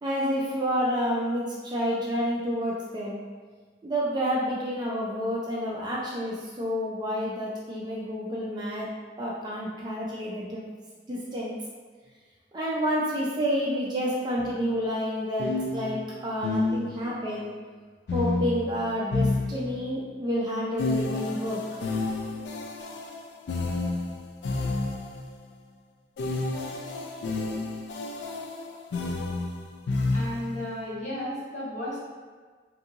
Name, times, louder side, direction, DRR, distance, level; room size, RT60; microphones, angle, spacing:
voice 1, 0.0-3.2 3.8-8.9 9.2-10.7 11.1-11.6 12.5-17.5 18.1-21.6, equal, 25° right, -5 dB, 0.4 m, -29 dB
sound 1, 14.4-14.5 15.4-17.2 18.1-20.0 20.8-25.3 26.2-30.7, left 3 dB, 65° left, 0.3 m, -30 dB
voice 2, 30.1-32.0, left 1 dB, 40° left, -9 dB, 1.0 m, -34 dB
2.8 x 2.7 x 2.4 m, 1.5 s
head